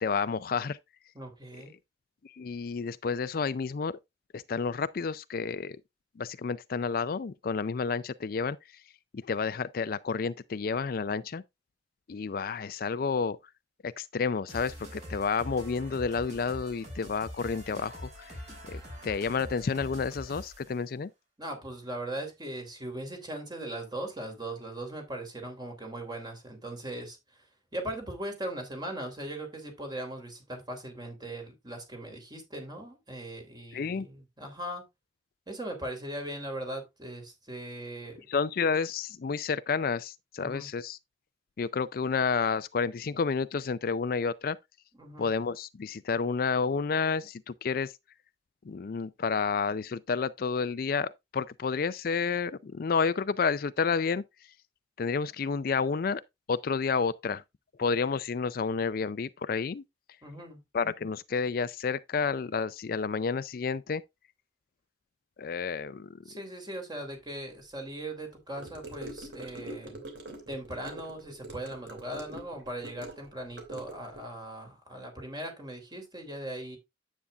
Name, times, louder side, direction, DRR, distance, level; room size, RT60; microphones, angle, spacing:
voice 1, 0.0-0.8 2.2-4.0 4.3-5.8 6.2-8.6 9.1-11.4 12.1-13.4 13.8-18.4 18.7-21.1 33.7-34.1 38.3-41.0 41.6-44.6 45.2-47.9 48.7-54.2 55.0-56.2 56.5-57.4 57.8-59.8 60.7-64.0 65.4-66.2, left 5 dB, 55° left, 0.4 m, -30 dB
voice 2, 1.1-1.8 21.4-27.2 27.7-34.8 35.5-38.3 40.4-40.7 45.0-45.3 60.2-60.6 66.3-69.9 70.5-76.8, right 1 dB, 25° right, 3.2 m, -39 dB
sound 1, 14.5-20.8, equal, 40° right, 5.6 m, -44 dB
Gurgling / Car passing by / Sink (filling or washing), 68.6-74.2, right 1 dB, 70° right, 2.8 m, -44 dB
9.5 x 8.5 x 2.4 m
head